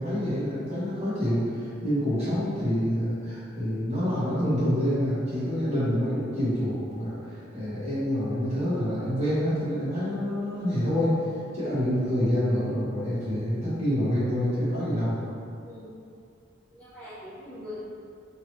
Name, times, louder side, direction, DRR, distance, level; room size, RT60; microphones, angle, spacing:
voice 1, 0.0-11.2 11.5-15.2, equal, 35° right, -11 dB, 1.2 m, -27 dB
voice 2, 15.6-15.9 16.7-17.8, left 1 dB, 10° left, -12 dB, 0.5 m, -42 dB
2.8 x 2.8 x 3.0 m, 2.4 s
head